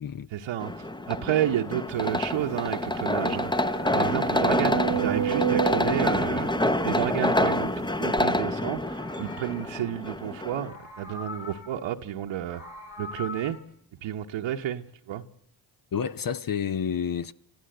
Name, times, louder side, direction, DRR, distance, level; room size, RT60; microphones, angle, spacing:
voice 1, 0.3-3.5 3.9-6.5 6.8-12.6 13.0-13.6 14.0-15.2, right 11 dB, 70° right, 1.0 m, -31 dB
sound 1, 0.6-10.7, left 1 dB, 10° left, 0.8 m, -27 dB
sound 2, 2.2-2.3 2.6-2.7 3.3-7.5 8.2-8.3, right 9 dB, 40° right, 1.1 m, -31 dB
Meow, 3.2-5.7 6.0-7.7 8.5-10.2 10.5-11.9 12.3-13.6, left 3 dB, 70° left, 5.6 m, -45 dB
voice 2, 15.9-17.3, left 7 dB, 45° left, 0.8 m, -29 dB
26.5 x 14.5 x 7.8 m
supercardioid pair, 45°, 49 cm